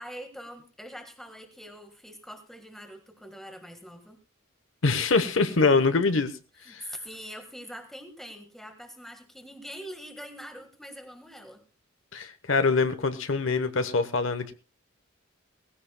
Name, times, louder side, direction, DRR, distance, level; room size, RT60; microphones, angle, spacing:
voice 1, 0.0-4.2 6.6-11.6, equal, ahead, 6 dB, 1.5 m, -43 dB
voice 2, 4.8-6.3 6.7-6.8 12.1-14.5, left 4 dB, 70° left, 10 dB, 1.0 m, -24 dB
19.5 x 15.5 x 2.2 m, 0.32 s
head